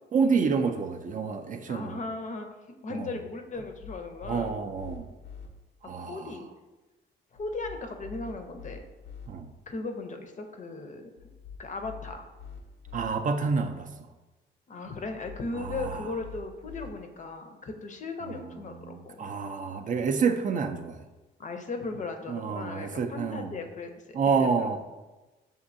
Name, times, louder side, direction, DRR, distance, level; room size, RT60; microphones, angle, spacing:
voice 1, 0.1-2.0 2.9-3.1 4.2-5.1 5.8-6.4 9.3-9.5 12.9-14.1 15.6-16.2 18.2-21.0 22.3-23.5 24.1-24.8, right 5 dB, 40° right, 6 dB, 0.4 m, -29 dB
voice 2, 1.7-2.5 2.8-4.5 6.0-6.5 7.3-8.8 9.7-11.1 11.6-12.3 14.7-19.2 21.4-23.9 24.4-24.8, left 3 dB, 40° left, 6 dB, 0.5 m, -37 dB
sound 1, 3.5-5.5 7.4-9.3 11.2-13.1 15.0-16.9, left 6 dB, 90° left, 0.7 m, -46 dB
6.4 x 2.6 x 2.6 m, 1.2 s
cardioid pair, 90°, 20 cm